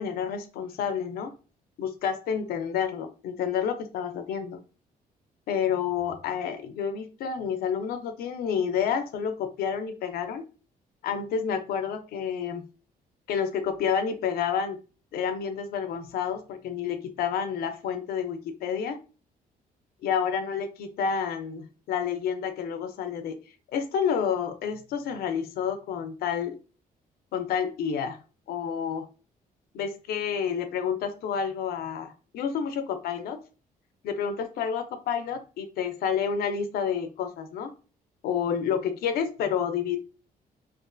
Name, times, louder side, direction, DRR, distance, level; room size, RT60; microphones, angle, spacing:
voice 1, 0.0-1.3 1.8-4.6 5.5-10.5 11.0-12.7 13.3-14.8 15.1-19.0 20.0-23.4 23.7-26.6 27.3-28.2 28.5-29.1 29.7-33.4 34.0-37.7 38.2-40.0, left 7 dB, 80° left, 8 dB, 0.4 m, -29 dB
2.4 x 2.4 x 2.2 m, 0.35 s
cardioid pair, 165°, 16 cm